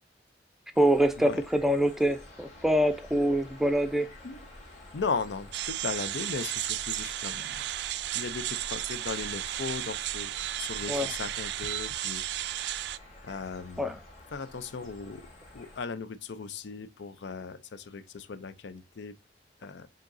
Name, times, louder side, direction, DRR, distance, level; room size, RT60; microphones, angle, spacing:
sound 1, 0.7-15.8, left 1 dB, 45° left, 2.0 m, -49 dB
voice 1, 0.8-4.1 10.9-11.1 13.8-14.0, right 1 dB, ahead, 0.4 m, -25 dB
voice 2, 4.7-7.6 8.1-10.3 10.6-12.9 13.2-13.9 14.3-15.2 15.5-19.1 19.6-19.9, left 5 dB, 85° left, 0.5 m, -37 dB
sound 2, 5.5-13.0, right 13 dB, 75° right, 0.3 m, -34 dB
7.3 x 2.8 x 2.5 m
head